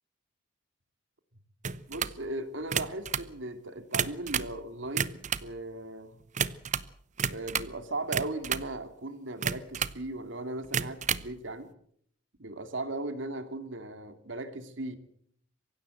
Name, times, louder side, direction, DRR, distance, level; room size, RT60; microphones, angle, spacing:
sound 1, 1.6-2.2 2.6-3.3 3.8-4.6 4.9-5.5 6.3-6.9 7.2-7.8 8.1-8.7 9.4-10.0 10.6-11.3, right 7 dB, 40° right, 0.8 m, -31 dB
voice 1, 1.9-6.2 7.3-11.7 12.4-15.0, right 2 dB, 70° right, 9 dB, 2.5 m, -37 dB
24.0 x 16.0 x 7.9 m, 0.68 s
head